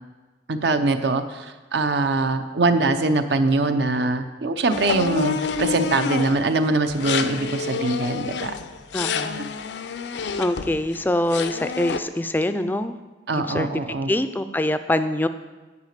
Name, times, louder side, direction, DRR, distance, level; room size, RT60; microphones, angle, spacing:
voice 1, 0.5-8.5 9.3-9.5 13.3-14.1, right 3 dB, 70° right, 9 dB, 0.7 m, -23 dB
sound 1, 4.7-6.5 6.9-11.0 11.3-12.0, left 5 dB, 75° left, 0.5 m, -28 dB
voice 2, 8.9-9.4 10.4-12.9 13.3-13.8 14.1-15.3, left 1 dB, 10° left, 11 dB, 0.3 m, -24 dB
9.6 x 5.0 x 6.6 m, 1.2 s
head